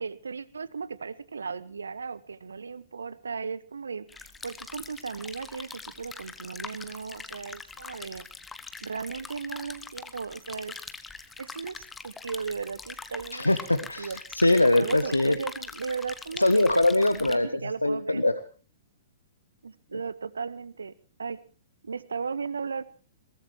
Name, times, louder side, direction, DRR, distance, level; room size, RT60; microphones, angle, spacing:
voice 1, 0.0-8.3 8.8-10.8 11.4-13.5 14.0-14.2 14.8-16.8 17.0-18.2 19.6-20.9 21.2-21.4 21.8-22.8, right 5 dB, 70° right, 20 dB, 0.9 m, -36 dB
sound 1, 4.1-17.3, left 4 dB, 10° left, 1.3 m, -43 dB
voice 2, 13.3-15.4 16.4-17.5 17.8-18.3, left 2 dB, 85° left, 11 dB, 1.0 m, -22 dB
21.5 x 18.5 x 3.2 m, 0.38 s
figure-of-eight pair, 110°, 0 cm